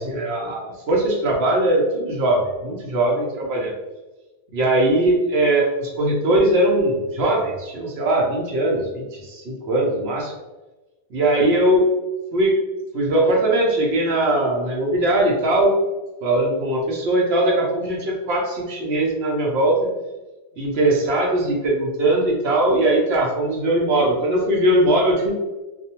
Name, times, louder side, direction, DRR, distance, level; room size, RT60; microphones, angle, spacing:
voice 1, 0.0-3.8 4.5-10.3 11.1-11.9 12.3-12.6 12.9-15.8 16.2-19.9 20.6-25.3, right 1 dB, 70° right, -2 dB, 0.8 m, -20 dB
2.4 x 2.0 x 2.8 m, 1.1 s
omnidirectional pair, 1.1 m